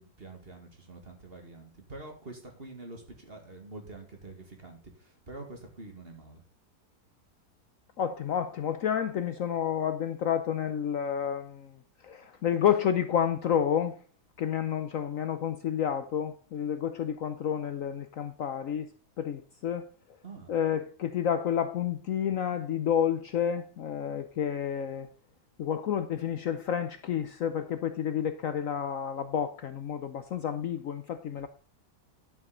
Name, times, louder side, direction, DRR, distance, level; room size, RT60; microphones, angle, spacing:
voice 1, 0.0-6.4 20.2-20.5, right 2 dB, 35° right, 2.3 m, -46 dB
voice 2, 8.0-11.8 12.0-14.0 14.4-18.9 19.2-19.9 20.5-25.1 25.6-31.5, left 9 dB, 60° left, 1.0 m, -30 dB
11.0 x 7.4 x 3.8 m
omnidirectional pair, 1.8 m